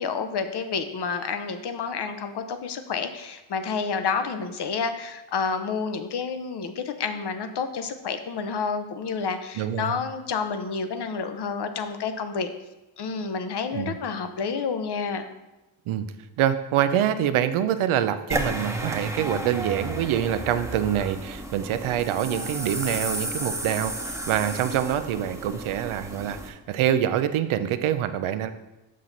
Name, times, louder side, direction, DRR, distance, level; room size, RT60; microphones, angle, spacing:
voice 1, 0.0-12.5 13.0-15.3, left 5 dB, 55° left, 8 dB, 0.8 m, -29 dB
voice 2, 9.6-10.0 13.7-13.9 15.9-16.0 16.4-28.5, right 10 dB, 85° right, 10 dB, 0.6 m, -25 dB
sound 1, 18.3-26.5, right 1 dB, 5° right, 0.9 m, -33 dB
6.3 x 5.8 x 3.9 m, 1.0 s
cardioid pair, 80°, 48 cm